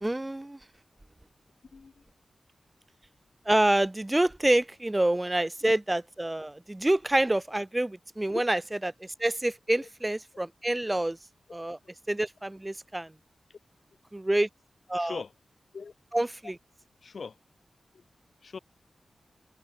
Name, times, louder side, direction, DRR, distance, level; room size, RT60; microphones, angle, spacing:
voice 1, 0.0-0.6 3.5-11.2 11.5-11.8 12.1-13.1 14.1-14.5 14.9-15.1 16.1-16.5, right 1 dB, 15° right, 0.8 m, -27 dB
voice 2, 1.7-2.0 8.3-8.4 9.8-9.9 10.9-11.0 11.8-11.9 13.5-13.6 15.0-15.3 15.7-15.9 17.0-17.4 17.9-18.0 18.4-18.6, left 5 dB, 60° left, 4.1 m, -40 dB
wide cardioid pair, 115°, 0 cm